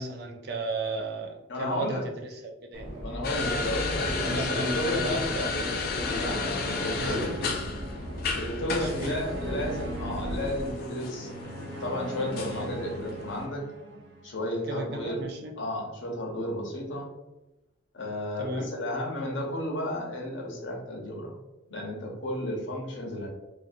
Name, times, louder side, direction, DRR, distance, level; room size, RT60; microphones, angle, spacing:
voice 1, 0.0-2.9 3.3-3.6 4.2-5.9 7.0-7.3 8.8-9.2 14.7-15.5 18.4-18.7, right 2 dB, 55° right, 1 dB, 0.4 m, -34 dB
voice 2, 1.5-2.0 3.0-5.3 6.1-7.5 8.4-11.3 11.8-13.7 14.2-15.3 15.6-17.1 17.9-21.4 21.7-23.3, left 1 dB, 75° left, -1 dB, 0.8 m, -33 dB
Subway metro underground, 2.7-10.7, equal, 20° right, 1.2 m, -38 dB
sound 1, 3.2-13.5, left 4 dB, 50° left, 0.3 m, -33 dB
sound 2, 3.2-14.5, right 2 dB, 80° right, 0.8 m, -40 dB
2.6 x 2.5 x 2.5 m, 0.97 s
head